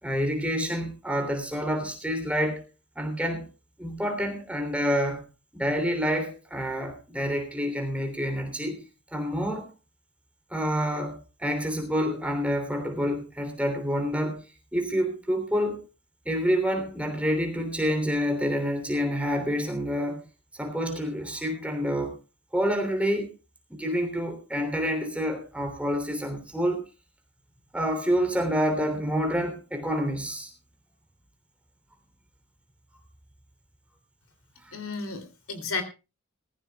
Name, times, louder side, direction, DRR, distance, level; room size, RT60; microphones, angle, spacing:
voice 1, 0.0-2.6 2.9-3.5 3.8-5.3 5.5-8.8 9.1-9.7 10.5-14.4 14.7-15.8 16.2-20.2 20.5-22.1 22.5-23.3 23.7-26.8 27.7-30.5, equal, 5° right, 4 dB, 3.2 m, -28 dB
voice 2, 34.7-35.8, left 4 dB, 80° left, 10 dB, 2.9 m, -33 dB
20.0 x 15.0 x 2.3 m, 0.28 s
head